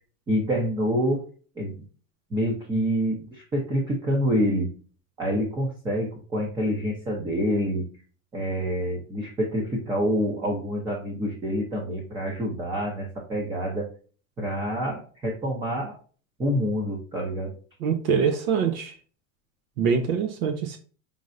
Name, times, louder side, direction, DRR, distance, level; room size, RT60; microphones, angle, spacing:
voice 1, 0.3-1.2 1.6-1.8 2.3-4.7 5.2-7.9 8.3-13.9 14.4-16.0 16.4-17.5, equal, 10° right, -1 dB, 0.5 m, -27 dB
voice 2, 17.8-18.9 19.8-20.8, right 6 dB, 85° right, 7 dB, 0.9 m, -24 dB
5.3 x 3.2 x 2.5 m, 0.39 s
supercardioid pair, 175°, 40 cm